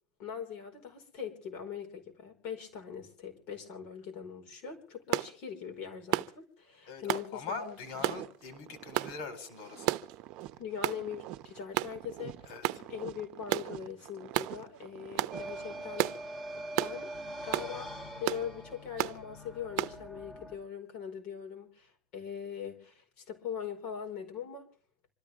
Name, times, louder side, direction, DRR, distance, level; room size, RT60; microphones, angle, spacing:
voice 1, 0.2-8.1 10.6-17.1 17.4-24.7, left 7 dB, 50° left, 3 dB, 4.9 m, -42 dB
sound 1, 5.1-5.3 6.1-6.3 7.1-7.3 8.0-8.2 8.9-9.1 9.9-10.1 10.8-11.0 11.7-11.9 12.6-12.8 13.5-13.7 14.3-14.5 15.2-15.4 16.0-16.2 16.8-17.0 17.5-17.7 18.2-18.4 19.0-19.2 19.8-19.9, right 17 dB, 90° right, 0.7 m, -31 dB
voice 2, 6.9-10.0 12.4-12.7, left 4 dB, 85° left, 7 dB, 4.4 m, -42 dB
sound 2, 7.6-16.2, right 15 dB, 55° right, 0.8 m, -48 dB
sound 3, 15.3-20.6, right 1 dB, 10° left, 4.0 m, -43 dB
26.5 x 13.5 x 3.6 m, 0.40 s
cardioid pair, 170°, 2 cm